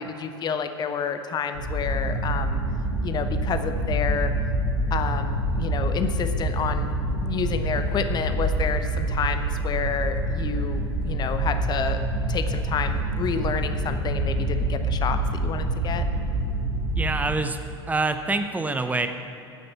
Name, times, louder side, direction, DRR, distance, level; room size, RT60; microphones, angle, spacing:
voice 1, 0.0-2.6 3.0-4.4 4.9-6.9 7.2-12.0 12.3-16.0, left 6 dB, 30° left, 9 dB, 0.8 m, -29 dB
sound 1, 1.5-17.2, right 1 dB, 80° right, 2.1 m, -26 dB
voice 2, 17.0-17.6 17.9-19.1, right 3 dB, 10° right, 8 dB, 0.7 m, -25 dB
8.9 x 8.2 x 7.3 m, 2.9 s
figure-of-eight pair, 80°, 14 cm